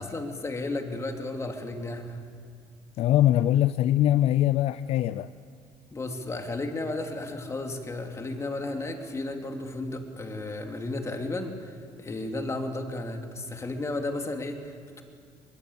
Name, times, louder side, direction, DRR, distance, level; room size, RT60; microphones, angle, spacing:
voice 1, 0.0-2.2 5.9-15.0, left 2 dB, 25° left, 3.0 m, -33 dB
voice 2, 3.0-5.3, left 13 dB, 65° left, 0.6 m, -22 dB
23.0 x 21.0 x 8.2 m
supercardioid pair, 90°, 11 cm